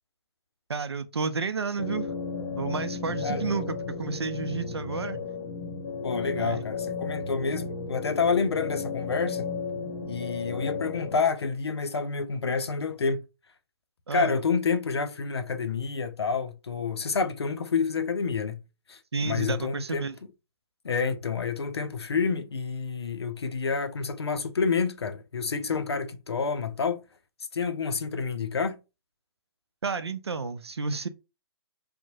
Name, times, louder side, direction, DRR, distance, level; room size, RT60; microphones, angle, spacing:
voice 1, 0.7-2.1 2.6-5.2 6.4-6.6 14.1-14.3 19.1-20.2 29.8-31.1, right 4 dB, 90° right, 0.4 m, -31 dB
sound 1, 1.8-11.2, left 5 dB, 55° left, 0.9 m, -34 dB
voice 2, 3.1-3.5 6.0-9.5 10.1-13.2 14.1-18.6 18.9-20.1 20.8-27.0 27.5-28.8, left 5 dB, 80° left, 0.5 m, -28 dB
2.7 x 2.1 x 2.7 m
figure-of-eight pair, 130°, 13 cm